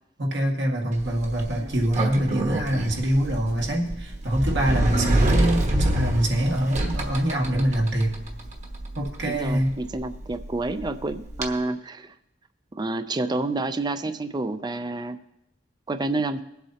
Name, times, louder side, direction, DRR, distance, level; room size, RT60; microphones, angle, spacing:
voice 1, 0.2-8.2 8.9-9.7, right 1 dB, 80° right, -1 dB, 2.0 m, -24 dB
Sliding door, 0.9-11.5, right 1 dB, 40° right, 1.3 m, -28 dB
voice 2, 4.9-5.2 9.3-12.1 12.8-15.2 15.9-16.4, right 2 dB, 25° right, 11 dB, 0.4 m, -29 dB
22.5 x 8.0 x 2.8 m, 0.87 s
head